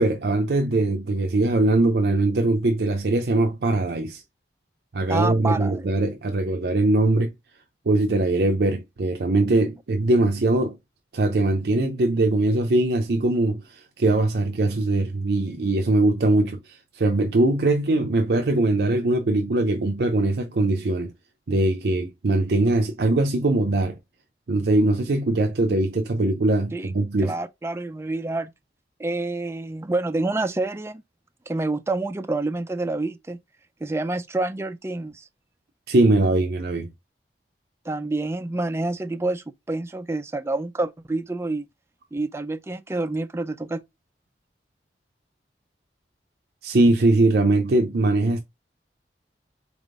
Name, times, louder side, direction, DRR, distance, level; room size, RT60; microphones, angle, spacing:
voice 1, 0.0-4.2 4.9-7.3 7.9-10.8 11.1-21.1 21.5-23.9 24.5-27.4 35.9-36.9 46.6-48.4, right 2 dB, 65° right, 0.5 m, -21 dB
voice 2, 5.1-5.8 26.7-26.9 27.2-28.5 29.0-31.0 31.5-33.4 33.8-35.3 37.9-41.7 42.1-43.8, right 2 dB, 15° right, 0.3 m, -28 dB
4.2 x 3.5 x 2.4 m
head